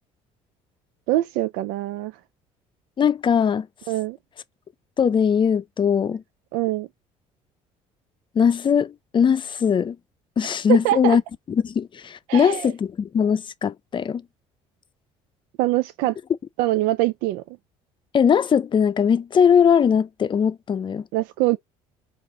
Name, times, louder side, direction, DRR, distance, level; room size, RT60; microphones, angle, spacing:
voice 1, 1.1-2.1 3.9-4.2 6.5-6.9 10.7-11.2 12.3-12.7 15.6-16.2 16.6-17.4 21.1-21.6, right 17 dB, 75° right, 0.4 m, -23 dB
voice 2, 3.0-3.7 5.0-6.2 8.3-10.0 10.4-11.2 11.6-14.2 18.1-21.1, left 7 dB, 35° left, 0.5 m, -20 dB
4.7 x 2.5 x 3.7 m
supercardioid pair, 75°, 15 cm